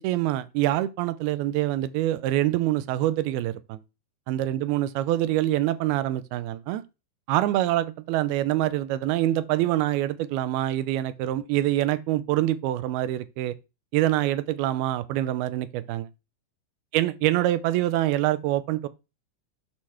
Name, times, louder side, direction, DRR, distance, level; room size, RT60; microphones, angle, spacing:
voice 1, 0.0-3.8 4.3-6.8 7.3-13.6 13.9-16.1 16.9-18.9, right 14 dB, 85° right, 2.6 m, -25 dB
9.0 x 3.9 x 5.7 m
omnidirectional pair, 4.5 m